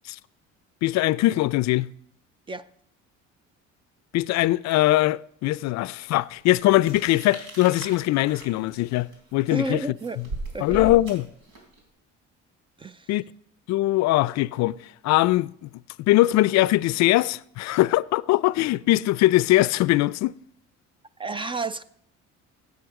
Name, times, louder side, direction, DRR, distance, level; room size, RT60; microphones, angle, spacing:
voice 1, 0.8-1.9 4.1-9.8 10.6-11.3 13.1-13.2 13.7-14.8 15.0-15.5 16.0-20.4, left 17 dB, 70° left, 0.4 m, -21 dB
sound 1, 6.7-11.8, right 2 dB, 90° right, 3.6 m, -38 dB
voice 2, 9.5-10.2 10.5-10.9 12.8-13.1 21.2-21.8, right 3 dB, 20° right, 0.4 m, -31 dB
14.0 x 8.4 x 4.8 m
cardioid pair, 120°, 29 cm